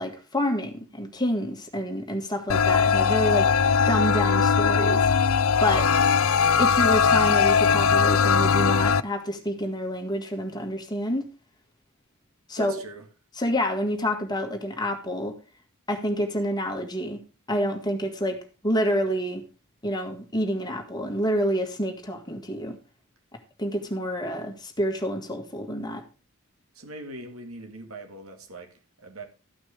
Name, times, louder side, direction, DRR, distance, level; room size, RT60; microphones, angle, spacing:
voice 1, 0.0-3.5 3.9-5.3 5.6-5.8 6.6-11.2 12.5-12.8 13.4-15.4 15.9-17.2 17.5-19.4 19.8-22.8 23.6-26.0, equal, 20° left, 1.8 m, -28 dB
sound 1, 2.5-9.0, left 6 dB, 65° left, 0.5 m, -20 dB
voice 2, 12.6-13.1 26.7-29.3, right 1 dB, 70° right, 2.2 m, -41 dB
13.5 x 6.0 x 4.9 m
head